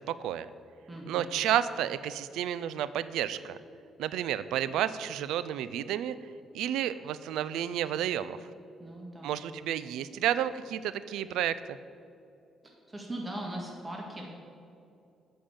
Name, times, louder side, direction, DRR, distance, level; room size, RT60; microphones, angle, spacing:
voice 1, 0.1-0.5 1.1-3.6 4.0-6.2 6.5-8.4 9.2-11.8, right 11 dB, 90° right, 15 dB, 0.3 m, -31 dB
voice 2, 0.9-1.2 8.8-9.4 12.6-14.2, right 1 dB, 20° right, -1 dB, 1.6 m, -40 dB
8.7 x 5.3 x 7.3 m, 2.6 s
cardioid pair, 90°, 0 cm